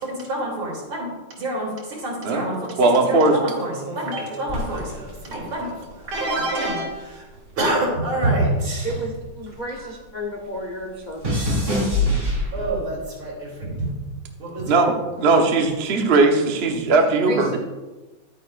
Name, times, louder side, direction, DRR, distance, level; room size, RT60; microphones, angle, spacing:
voice 1, 0.1-1.1 1.4-8.9 9.8-9.9 12.5-13.9 14.4-14.9, right 1 dB, 80° right, -4 dB, 3.7 m, -27 dB
voice 2, 2.8-3.3 14.7-14.9 15.2-17.6, right 3 dB, 45° right, 3 dB, 0.8 m, -18 dB
sound 1, 4.5-7.0 7.3-9.9 10.2-13.0 13.7-14.1, left 1 dB, 25° right, 3.0 m, -27 dB
voice 3, 8.8-11.4 17.3-17.6, equal, 85° left, 0 dB, 0.4 m, -32 dB
11.0 x 9.3 x 2.5 m, 1.2 s
omnidirectional pair, 2.3 m